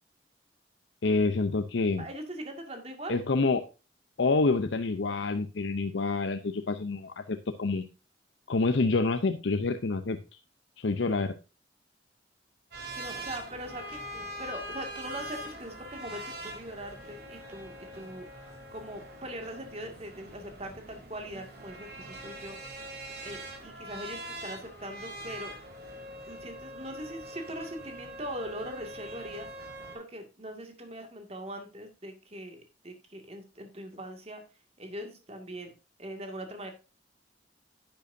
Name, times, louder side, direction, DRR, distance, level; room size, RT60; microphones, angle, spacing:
voice 1, 1.0-2.0 3.1-3.6 4.2-7.8 8.5-10.2 10.8-11.3, left 3 dB, 85° left, 8 dB, 0.7 m, -27 dB
voice 2, 2.0-3.2 13.0-22.6 23.2-25.5 26.3-29.5 29.9-34.4 34.8-35.7 36.0-36.7, right 1 dB, 35° right, 5 dB, 2.1 m, -41 dB
sound 1, 12.7-30.0, right 1 dB, 60° right, 3.2 m, -43 dB
10.5 x 9.1 x 2.7 m, 0.31 s
head